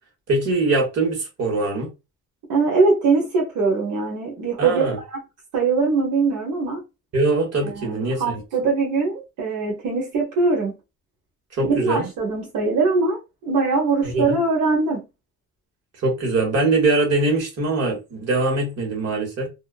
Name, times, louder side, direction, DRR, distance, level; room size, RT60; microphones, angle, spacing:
voice 1, 0.3-1.9 4.6-5.0 7.1-8.4 11.5-12.1 14.0-14.4 16.0-19.5, right 2 dB, 55° right, 1.5 m, -22 dB
voice 2, 2.5-5.2 5.5-6.8 7.6-10.8 11.6-15.0, right 4 dB, 85° right, 1.0 m, -22 dB
2.7 x 2.3 x 2.5 m
cardioid pair, 90°, 30 cm